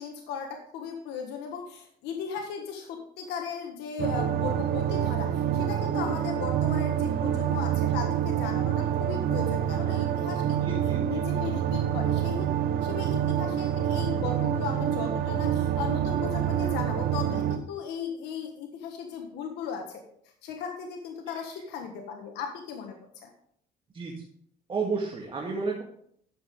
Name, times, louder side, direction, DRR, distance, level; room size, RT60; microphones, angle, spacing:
voice 1, 0.0-12.5 12.8-20.0 20.4-22.9 23.2-23.3, left 6 dB, 85° left, 3 dB, 1.5 m, -36 dB
sound 1, 4.0-17.6, right 10 dB, 65° right, 1.0 m, -27 dB
voice 2, 10.6-11.0 23.9-24.1 24.7-25.8, right 4 dB, 30° right, -1 dB, 1.8 m, -31 dB
11.5 x 7.3 x 3.7 m, 0.65 s
cardioid pair, 110°, 17 cm